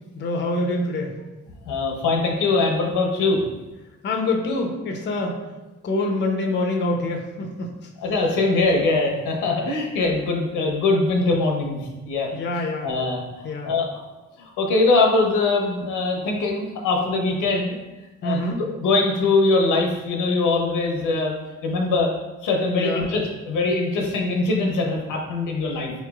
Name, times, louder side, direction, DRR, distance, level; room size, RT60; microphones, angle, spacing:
voice 1, 0.2-1.1 4.0-5.4 5.8-7.8 12.3-12.9 13.4-13.7 18.2-18.6 22.8-23.1, left 2 dB, 35° left, 2 dB, 0.6 m, -25 dB
voice 2, 1.6-3.4 8.0-12.3 12.6-13.9 14.4-17.8 18.2-18.4 18.8-21.3 21.6-22.1 22.4-25.9, left 3 dB, 85° left, 1 dB, 0.7 m, -22 dB
4.3 x 3.0 x 2.3 m, 1.1 s
cardioid pair, 90°, 30 cm